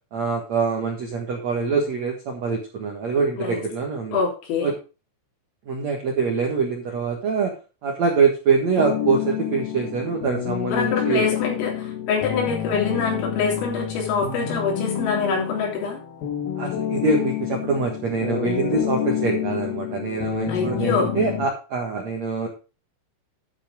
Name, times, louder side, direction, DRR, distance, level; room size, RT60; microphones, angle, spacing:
voice 1, 0.1-4.2 4.6-4.7 5.7-7.5 7.8-11.2 16.6-22.5, right 5 dB, 70° right, 1 dB, 1.7 m, -24 dB
voice 2, 4.1-4.7 10.7-16.0 20.5-21.2, left 5 dB, 85° left, -1 dB, 5.9 m, -25 dB
sound 1, 8.8-21.5, left 10 dB, 70° left, 2.2 m, -28 dB
11.5 x 5.7 x 5.0 m, 0.33 s
omnidirectional pair, 5.7 m